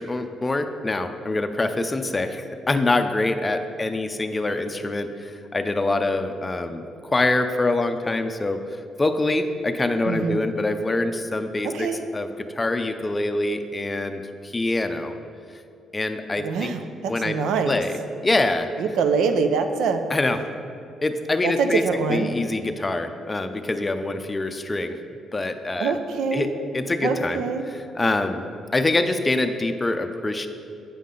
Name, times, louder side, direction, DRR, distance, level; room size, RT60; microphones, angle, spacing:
voice 1, 0.0-15.1 15.9-16.8 17.1-17.4 17.6-18.7 20.1-20.4 21.0-25.0 25.3-26.0 26.3-28.4 28.7-30.5, left 2 dB, 20° left, 7 dB, 0.5 m, -25 dB
voice 2, 10.1-10.4 11.7-12.0 16.4-17.8 18.8-20.0 21.4-22.3 25.8-26.5 27.0-27.6, right 5 dB, 85° right, 7 dB, 0.5 m, -24 dB
8.4 x 5.5 x 3.8 m, 2.5 s
cardioid pair, 90°, 0 cm